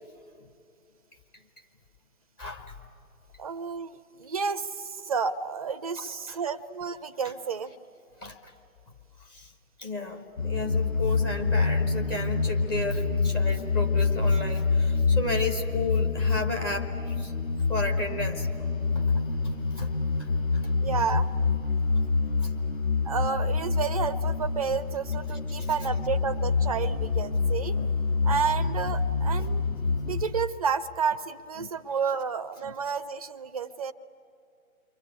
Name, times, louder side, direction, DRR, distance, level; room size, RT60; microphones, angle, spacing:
voice 1, 2.4-2.7 6.0-6.1 8.2-8.5 9.3-9.5 9.8-17.3 17.7-18.5 18.9-19.2 19.7-19.9 20.2-20.3 20.6-20.7 22.4-22.5 25.6-25.7 27.8-27.9 28.3-28.4 28.8-28.9 29.3-29.5 31.6-31.7, left 2 dB, 15° left, 2 dB, 1.1 m, -33 dB
voice 2, 3.4-7.7 20.8-21.3 23.0-27.8 28.2-29.6 30.1-33.9, right 6 dB, 25° right, 11 dB, 0.6 m, -31 dB
sound 1, 10.4-30.2, left 4 dB, 65° left, 5.5 m, -26 dB
29.0 x 23.5 x 8.3 m, 2.6 s
figure-of-eight pair, 140°, 43 cm